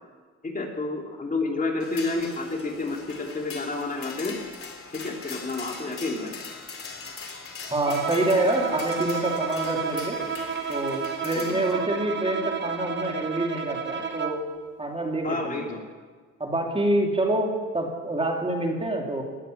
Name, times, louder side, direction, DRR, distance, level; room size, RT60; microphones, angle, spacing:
voice 1, 0.4-4.4 4.9-6.3 11.3-11.6 15.2-15.8, left 3 dB, 25° left, 0 dB, 2.9 m, -30 dB
sound 1, 1.8-11.7, left 4 dB, 45° left, 3.3 m, -41 dB
voice 2, 7.7-10.2 10.7-14.4 14.8-15.7 16.4-19.2, right 1 dB, 20° right, 1 dB, 3.1 m, -26 dB
Bowed string instrument, 7.8-14.5, right 6 dB, 35° right, 1.6 m, -31 dB
19.0 x 8.0 x 9.2 m, 1.5 s
cardioid pair, 90°, 30 cm